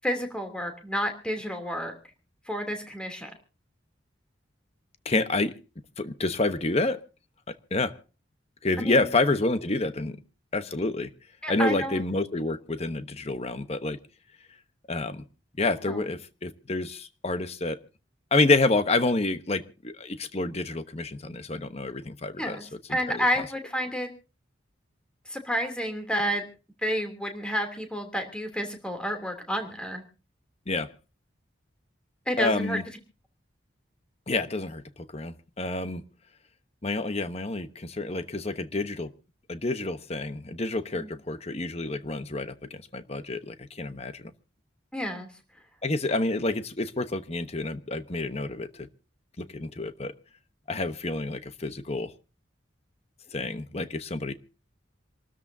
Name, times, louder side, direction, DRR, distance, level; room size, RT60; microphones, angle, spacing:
voice 1, 0.0-1.9 2.5-3.3 8.8-9.0 11.4-12.0 15.9-16.0 22.4-22.6 22.9-24.1 25.3-26.4 26.8-30.0 32.3-32.8 40.9-41.1 44.9-45.3, equal, 5° left, 5 dB, 2.9 m, -30 dB
voice 2, 5.0-5.5 6.0-7.0 7.5-8.0 8.6-10.2 10.5-11.1 11.5-14.0 14.9-15.2 15.6-17.8 18.3-22.6 23.1-23.3 30.7-30.9 32.4-32.8 34.3-34.8 35.1-36.0 36.8-39.1 39.5-44.2 45.8-48.9 49.4-50.1 50.7-52.1 53.3-54.3, left 2 dB, 35° left, 11 dB, 1.1 m, -28 dB
27.5 x 13.5 x 2.7 m, 0.33 s
head